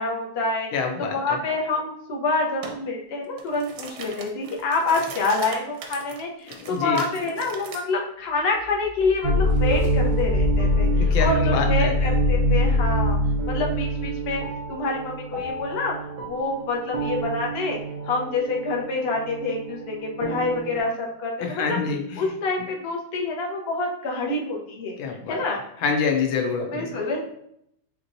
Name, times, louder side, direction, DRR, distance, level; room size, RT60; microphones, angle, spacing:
voice 1, 0.0-0.7 1.0-13.2 13.4-14.4 14.7-16.0 16.2-17.8 18.1-21.8 22.2-25.0 25.3-25.6 26.7-27.2, left 3 dB, 55° left, -1 dB, 0.7 m, -27 dB
voice 2, 0.7-1.4 6.6-7.0 10.8-11.9 21.4-22.3 25.0-25.4 25.8-26.9, left 5 dB, 85° left, 3 dB, 1.5 m, -26 dB
sound 1, 2.6-2.8 3.2-7.8, right 4 dB, 85° right, 1.4 m, -39 dB
sound 2, 8.6-12.8, left 2 dB, 35° left, 1.1 m, -33 dB
sound 3, 9.2-20.8, equal, 60° right, 0.8 m, -25 dB
5.7 x 3.0 x 2.6 m, 0.72 s
omnidirectional pair, 2.2 m